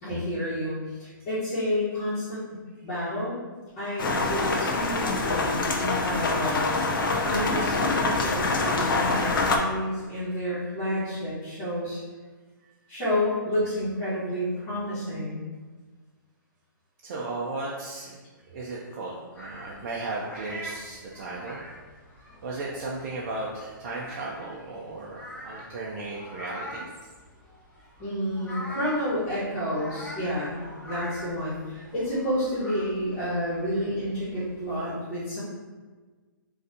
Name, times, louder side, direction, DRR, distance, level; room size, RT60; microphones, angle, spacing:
voice 1, 0.0-2.5 2.8-3.3 3.8-6.7 7.0-12.0 12.9-15.4 28.0-35.4, equal, 30° left, -13 dB, 1.3 m, -30 dB
sound 1, 4.0-9.6, left 3 dB, 80° left, 0.6 m, -25 dB
voice 2, 17.0-18.2 18.5-21.6 22.4-26.9, right 2 dB, 45° right, -4 dB, 0.5 m, -35 dB
sound 2, 19.3-34.8, equal, 10° left, 1.0 m, -44 dB
3.9 x 2.6 x 2.6 m, 1.4 s
hypercardioid pair, 150°, 11 cm